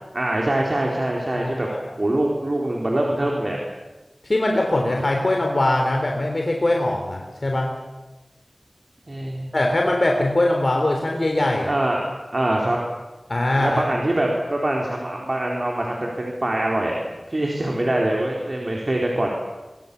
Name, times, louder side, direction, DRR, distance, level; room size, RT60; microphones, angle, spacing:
voice 1, 0.1-1.7 2.0-3.6 9.1-9.5 11.7-12.0 12.3-12.8 13.6-19.3, right 1 dB, 50° right, -1 dB, 4.4 m, -24 dB
voice 2, 1.4-1.8 4.2-7.7 9.5-11.7 13.3-13.8, left 1 dB, 55° left, 1 dB, 3.7 m, -21 dB
25.0 x 24.5 x 7.2 m, 1.1 s
wide cardioid pair, 60°, 0 cm